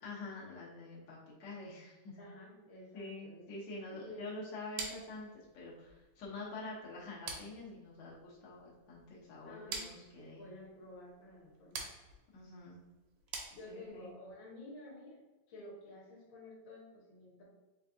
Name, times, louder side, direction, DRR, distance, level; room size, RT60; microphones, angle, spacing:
voice 1, 0.0-2.2 2.9-10.4 12.3-12.8 13.7-14.1, left 2 dB, 80° left, -5 dB, 0.9 m, -47 dB
voice 2, 2.2-3.4 3.9-4.2 9.4-9.9 10.3-11.8 13.5-15.2 15.5-17.4, left 1 dB, 60° left, -4 dB, 1.3 m, -51 dB
sound 1, 4.8-14.1, right 4 dB, 75° right, 1.9 m, -48 dB
4.6 x 3.3 x 2.6 m, 1.2 s
omnidirectional pair, 3.4 m